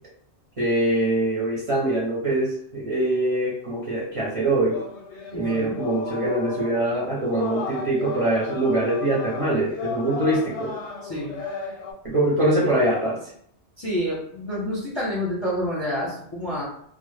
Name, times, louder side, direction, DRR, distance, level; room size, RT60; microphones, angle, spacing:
voice 1, 0.6-4.8 5.3-10.8 12.0-13.2, right 1 dB, 40° right, -6 dB, 0.6 m, -23 dB
sound 1, 4.7-11.9, left 4 dB, 85° left, 0.9 m, -34 dB
voice 2, 5.3-5.8 11.1-11.4 13.8-16.6, equal, 35° left, -5 dB, 0.5 m, -28 dB
2.0 x 2.0 x 3.1 m, 0.65 s
omnidirectional pair, 1.1 m